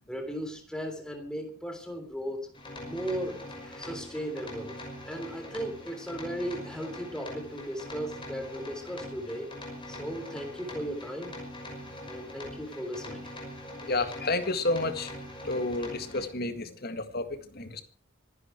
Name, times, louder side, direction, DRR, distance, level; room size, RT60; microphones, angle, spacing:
voice 1, 0.1-2.5 2.8-4.8 5.1-9.5 9.9-11.4 12.1-13.3, equal, 5° left, 4 dB, 3.6 m, -36 dB
sound 1, 2.5-16.3, left 1 dB, 25° left, 5.9 m, -42 dB
voice 2, 13.8-15.1 15.4-17.8, left 2 dB, 50° left, 9 dB, 1.8 m, -30 dB
26.0 x 11.0 x 4.5 m, 0.40 s
head